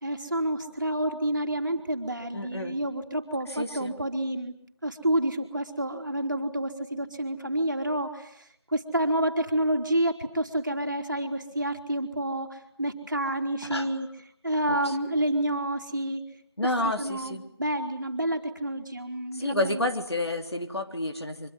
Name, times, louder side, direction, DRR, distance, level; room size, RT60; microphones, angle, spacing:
voice 1, 0.0-4.5 4.8-14.1 14.4-16.2 16.8-19.9, right 1 dB, 45° right, 4 dB, 3.3 m, -29 dB
voice 2, 2.3-2.8 3.5-3.9 13.6-13.9 16.6-17.4 19.3-21.5, left 1 dB, 70° left, 5 dB, 3.5 m, -30 dB
25.0 x 23.5 x 9.4 m, 0.68 s
figure-of-eight pair, 175°, 14 cm